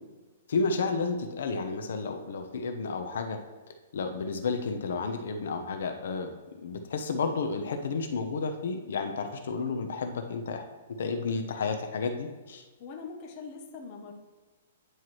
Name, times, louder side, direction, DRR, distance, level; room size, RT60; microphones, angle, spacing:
voice 1, 0.5-3.4 3.9-6.3 6.6-10.6 11.0-12.6, left 4 dB, 70° left, 6 dB, 0.8 m, -31 dB
voice 2, 12.8-14.1, left 4 dB, 30° left, 2 dB, 0.8 m, -42 dB
9.4 x 4.5 x 3.1 m, 1.3 s
hypercardioid pair, 170°, 0 cm